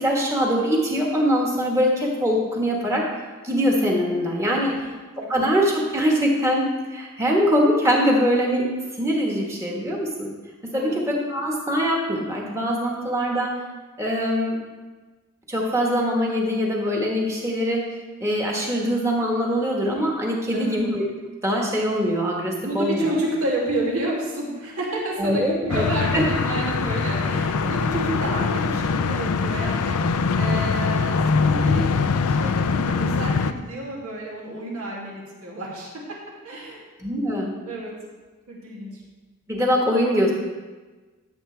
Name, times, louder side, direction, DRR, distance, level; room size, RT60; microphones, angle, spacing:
voice 1, 0.0-3.0 3.4-4.7 5.3-8.7 9.0-10.3 10.6-13.6 14.0-14.6 15.5-17.9 18.2-21.0 21.4-23.1 25.2-25.8 26.1-26.2 37.0-37.5 39.5-40.3, equal, 15° right, -1 dB, 1.5 m, -22 dB
voice 2, 22.6-30.0 30.4-36.2 36.4-36.8 37.6-37.9 38.5-39.0, right 1 dB, 75° right, -4 dB, 2.7 m, -30 dB
sound 1, 25.7-33.5, left 4 dB, 80° left, 0.5 m, -23 dB
13.0 x 7.4 x 3.4 m, 1.3 s
head